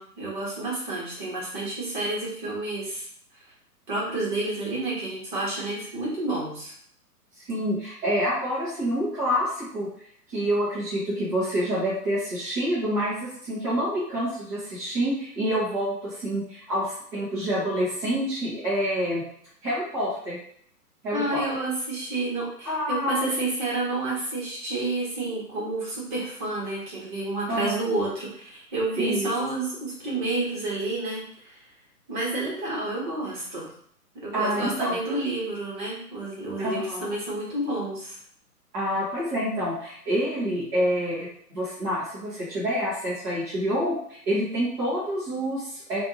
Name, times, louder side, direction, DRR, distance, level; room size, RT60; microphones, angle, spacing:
voice 1, 0.0-3.1 3.3-3.4 3.9-6.7 21.1-31.7 32.1-33.7 34.1-38.2, right 2 dB, 30° right, -5 dB, 1.3 m, -30 dB
voice 2, 7.5-9.9 10.3-19.2 19.6-20.4 21.0-21.4 22.6-23.3 27.5-27.8 29.0-29.3 34.3-35.0 36.6-37.1 38.7-46.0, equal, 15° right, -12 dB, 0.8 m, -27 dB
3.3 x 2.5 x 2.9 m, 0.63 s
figure-of-eight pair, 125°, 48 cm